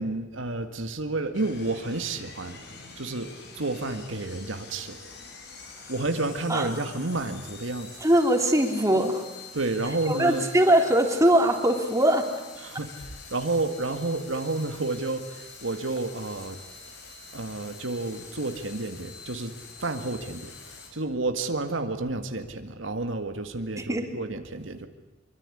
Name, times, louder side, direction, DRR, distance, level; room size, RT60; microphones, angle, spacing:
voice 1, 0.0-2.6 3.0-5.0 5.9-8.0 9.5-10.4 12.6-16.6 17.3-20.5 20.9-24.9, right 2 dB, 85° right, 6 dB, 1.9 m, -30 dB
sound 1, 1.3-20.9, left 4 dB, 60° left, 6.4 m, -46 dB
voice 2, 8.0-9.2 10.1-12.3 23.8-24.1, right 1 dB, 15° right, 3 dB, 3.2 m, -21 dB
24.5 x 24.0 x 10.0 m, 1.1 s
head